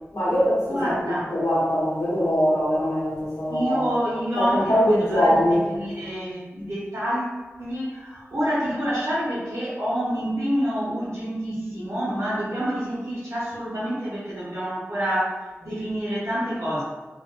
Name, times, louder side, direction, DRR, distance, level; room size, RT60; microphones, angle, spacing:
voice 1, 0.1-3.9 4.4-5.7, equal, 85° left, -8 dB, 1.4 m, -22 dB
voice 2, 0.7-1.3 3.5-5.4 5.7-16.8, equal, 65° right, -10 dB, 1.0 m, -27 dB
4.0 x 2.2 x 2.5 m, 1.2 s
wide cardioid pair, 45°, 5 cm